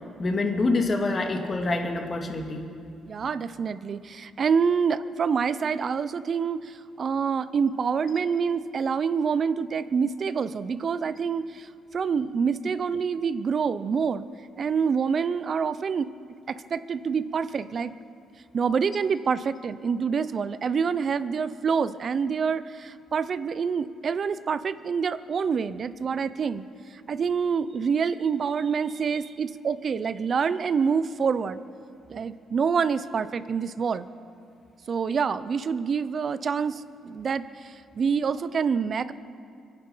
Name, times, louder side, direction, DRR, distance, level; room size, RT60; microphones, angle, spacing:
voice 1, 0.2-2.7, left 3 dB, 35° left, 3 dB, 2.1 m, -26 dB
voice 2, 3.1-14.3 14.6-16.1 16.5-17.9 18.5-31.6 32.1-34.1 34.9-39.1, right 6 dB, 50° right, 15 dB, 0.6 m, -27 dB
25.0 x 9.9 x 5.6 m, 2.4 s
cardioid pair, 90°, 0 cm